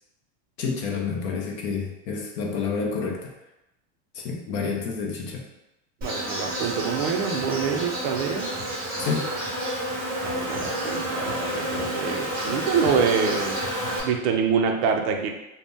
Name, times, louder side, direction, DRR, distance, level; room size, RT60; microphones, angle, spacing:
voice 1, 0.6-3.3 4.1-5.5 9.0-9.4, left 5 dB, 30° left, 0 dB, 0.4 m, -29 dB
Insect, 6.0-14.0, right 1 dB, 25° right, 0.9 m, -29 dB
voice 2, 6.0-8.5 10.2-13.6 14.0-15.3, right 6 dB, 50° right, 3 dB, 0.5 m, -26 dB
2.6 x 2.1 x 3.5 m, 0.93 s
supercardioid pair, 155°, 40 cm